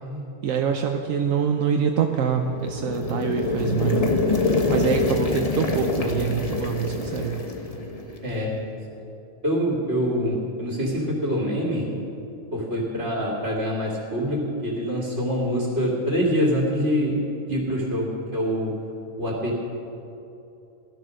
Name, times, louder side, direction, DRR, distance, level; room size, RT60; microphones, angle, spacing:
voice 1, 0.4-4.1 4.7-7.4, right 7 dB, 75° right, 4 dB, 1.1 m, -25 dB
sound 1, 2.3-8.4, left 3 dB, 30° left, 1.2 m, -25 dB
voice 2, 9.4-11.9 12.5-17.2 17.5-18.7 19.2-19.6, equal, 50° right, -3 dB, 2.8 m, -25 dB
16.5 x 12.5 x 6.4 m, 2.8 s
omnidirectional pair, 1.4 m